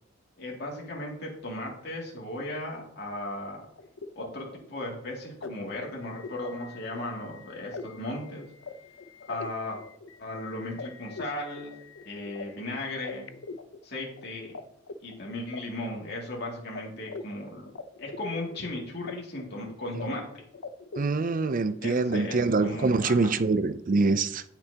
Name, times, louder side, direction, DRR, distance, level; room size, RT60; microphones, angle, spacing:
voice 1, 0.4-3.6 4.1-8.5 9.3-9.8 10.2-11.7 12.0-13.3 13.8-14.6 15.0-17.7 18.0-20.2 21.8-23.4, left 1 dB, 55° left, -2 dB, 2.4 m, -36 dB
sound 1, 3.5-14.6 14.9-16.4 16.8-16.9 17.1-19.1 19.4-20.1 20.3-21.7 22.1-22.2, left 4 dB, 75° left, 0.7 m, -43 dB
voice 2, 21.0-24.4, right 3 dB, 45° right, 13 dB, 0.5 m, -25 dB
17.0 x 6.0 x 2.9 m, 0.69 s
head